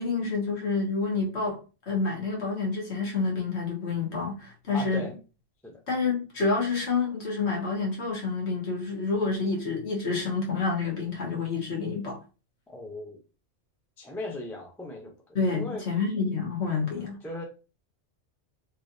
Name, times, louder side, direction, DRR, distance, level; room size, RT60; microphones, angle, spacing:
voice 1, 0.0-1.6 1.9-5.1 5.9-12.2 15.3-17.2, left 4 dB, 70° left, 1.4 m, -28 dB
voice 2, 4.7-5.1 5.6-5.8 12.7-13.2 14.0-15.8 16.8-17.4, left 2 dB, 5° left, 0.4 m, -38 dB
3.1 x 2.9 x 2.6 m
omnidirectional pair, 1.2 m